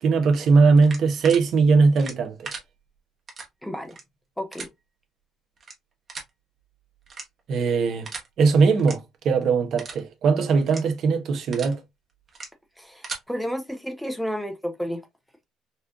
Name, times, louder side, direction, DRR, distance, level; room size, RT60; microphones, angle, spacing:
voice 1, 0.0-2.6 7.5-8.1 8.4-9.0 9.2-11.8, right 4 dB, 60° right, 0.9 m, -20 dB
sound 1, 0.8-1.4 1.9-2.6 3.3-3.5 3.8-4.0 4.5-4.7 5.6-5.7 6.1-6.3 7.1-7.5 8.0-8.3 8.7-8.9 9.3-9.4 9.8-10.0 10.6-10.8 11.3-11.7 12.3-12.5 12.8-13.2, right 4 dB, 35° right, 1.2 m, -37 dB
voice 2, 3.6-4.0 4.4-4.7 12.8-15.0, equal, ahead, 0.7 m, -31 dB
4.3 x 2.4 x 2.4 m
cardioid pair, 105°, 0 cm